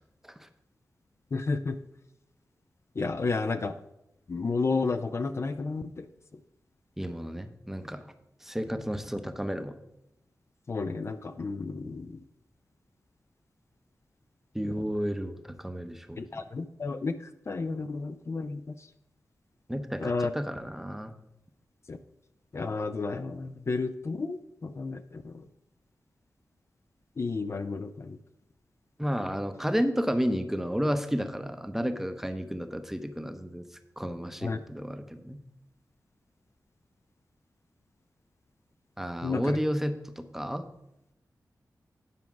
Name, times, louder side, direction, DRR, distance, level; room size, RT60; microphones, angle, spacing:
voice 1, 1.3-1.7 3.0-3.7 4.3-6.1 10.7-12.2 14.6-14.7 16.2-18.8 20.0-20.3 21.9-22.0 22.5-25.4 27.2-28.2 34.4-34.6 39.2-39.6, left 4 dB, 45° left, 9 dB, 0.5 m, -32 dB
voice 2, 7.0-8.1 8.4-9.7 14.5-16.4 19.7-21.1 29.0-33.7 34.0-35.4 39.0-40.6, equal, 5° right, 8 dB, 0.7 m, -32 dB
9.4 x 4.7 x 5.9 m, 0.86 s
wide cardioid pair, 85°, 6 cm